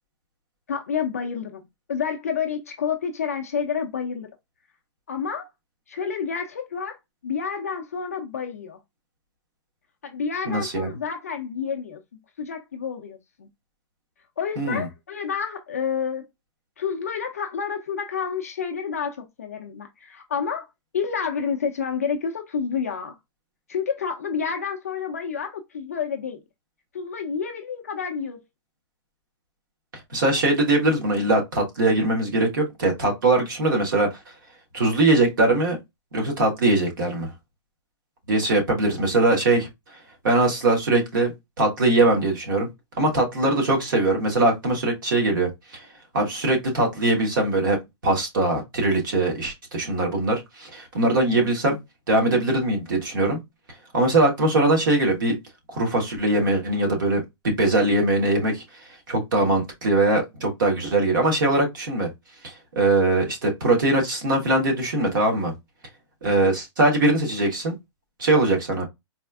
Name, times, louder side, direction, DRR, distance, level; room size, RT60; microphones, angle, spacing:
voice 1, 0.7-4.3 5.1-5.5 5.9-7.0 7.2-8.8 10.0-12.0 12.4-13.5 14.4-16.3 16.8-20.7 20.9-23.2 23.7-26.4 26.9-28.4 66.4-66.6, left 6 dB, 30° left, 0.4 m, -29 dB
voice 2, 10.5-10.9 14.6-14.9 30.1-34.1 34.7-35.8 36.1-37.3 38.3-39.7 40.2-41.3 41.6-42.7 43.0-45.8 46.1-47.8 48.0-51.8 52.1-53.4 53.9-55.4 55.7-58.6 59.1-62.1 62.4-65.5 66.2-67.7 68.2-68.8, right 2 dB, 45° right, 1.2 m, -21 dB
4.1 x 2.4 x 2.2 m
hypercardioid pair, 180°, 15 cm